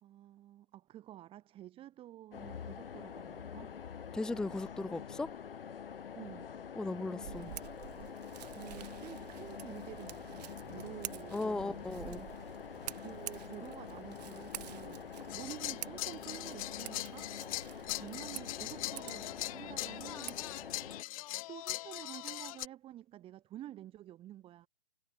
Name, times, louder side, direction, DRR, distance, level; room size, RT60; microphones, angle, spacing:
voice 1, 0.0-3.8 6.1-6.5 8.4-12.3 13.0-17.3 17.9-20.6 21.5-24.7, right 13 dB, 20° right, 2.8 m, -50 dB
sound 1, 2.3-21.0, left 7 dB, 70° left, 1.9 m, -46 dB
voice 2, 4.1-5.3 6.8-7.5 11.3-12.3, left 2 dB, ahead, 0.8 m, -37 dB
Scissors, 7.2-20.9, right 14 dB, 45° right, 3.3 m, -49 dB
sound 2, 15.3-22.7, left 18 dB, 35° left, 1.7 m, -41 dB
hypercardioid pair, 135°, 29 cm